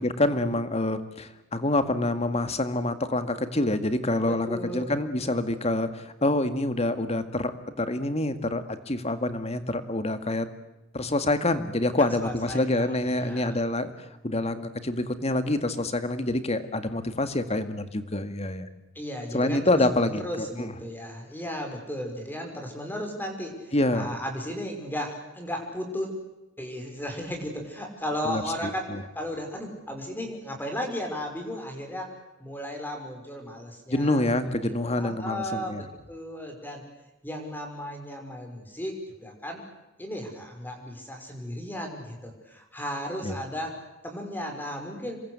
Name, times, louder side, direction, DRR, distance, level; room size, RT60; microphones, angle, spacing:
voice 1, 0.0-7.5 7.8-10.5 10.9-13.9 14.2-18.7 19.3-20.7 23.7-24.1 28.2-29.0 33.9-35.8 43.2-43.4, left 1 dB, 30° left, 10 dB, 2.0 m, -27 dB
voice 2, 4.3-4.9 12.0-13.5 18.9-26.1 26.6-28.9 29.2-34.2 34.7-36.8 37.2-38.9 39.2-39.6 40.0-43.8 44.0-45.2, equal, 10° left, 3 dB, 5.8 m, -35 dB
27.5 x 23.0 x 8.3 m, 0.94 s
head